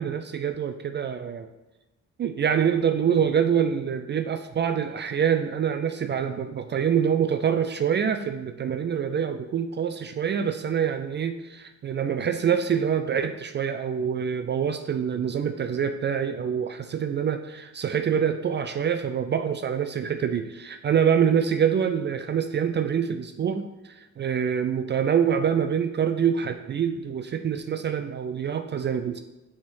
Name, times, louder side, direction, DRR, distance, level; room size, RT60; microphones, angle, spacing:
voice 1, 0.0-1.5 2.2-29.2, right 8 dB, 35° right, 8 dB, 0.4 m, -25 dB
6.0 x 3.7 x 4.4 m, 1.0 s
cardioid pair, 90°, 30 cm